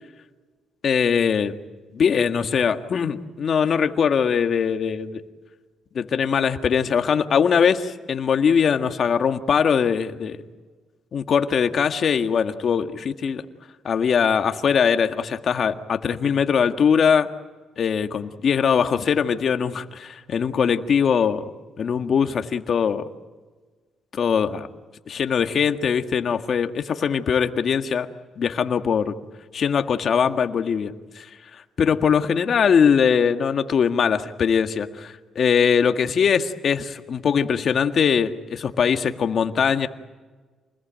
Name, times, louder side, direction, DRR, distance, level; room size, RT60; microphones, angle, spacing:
voice 1, 0.8-1.5 1.9-5.2 5.9-10.4 11.1-13.5 13.8-17.3 17.8-21.5 21.8-23.1 24.1-24.7 25.1-28.1 28.4-29.0 29.5-31.3 31.8-39.9, left 7 dB, 55° left, 8 dB, 1.8 m, -21 dB
28.5 x 20.5 x 9.1 m, 1.4 s
cardioid pair, 90°, 0 cm